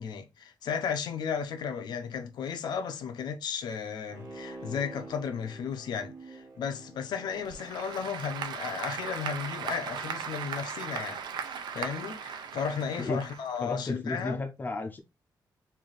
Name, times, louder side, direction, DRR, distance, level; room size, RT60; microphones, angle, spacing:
voice 1, 0.0-14.4, left 6 dB, 70° left, 0.6 m, -34 dB
Bowed string instrument, 4.1-8.7 9.1-9.2, right 3 dB, 45° right, 1.3 m, -47 dB
Applause / Crowd, 7.3-13.9, right 7 dB, 80° right, 0.5 m, -38 dB
voice 2, 13.6-15.0, left 2 dB, 25° left, 0.5 m, -33 dB
3.4 x 2.7 x 3.8 m
wide cardioid pair, 165°, 8 cm